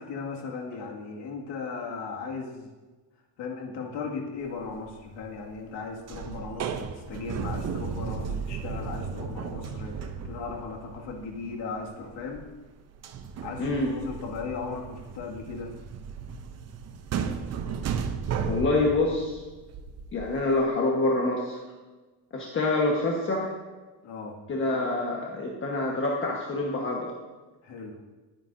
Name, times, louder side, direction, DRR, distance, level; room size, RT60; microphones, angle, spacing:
voice 1, 0.0-2.7 3.4-12.5 13.4-15.7 24.0-24.4 27.6-28.0, left 4 dB, 90° left, 0 dB, 2.2 m, -37 dB
sound 1, 4.6-5.0 5.3-5.8 6.1-12.7 12.9-20.6, right 6 dB, 40° right, 0.7 m, -35 dB
voice 2, 13.6-13.9 18.4-19.4 20.1-21.6 22.3-23.5 24.5-27.1, left 2 dB, 30° left, -2 dB, 1.4 m, -26 dB
20.0 x 9.1 x 2.7 m, 1.2 s
cardioid pair, 175°, 41 cm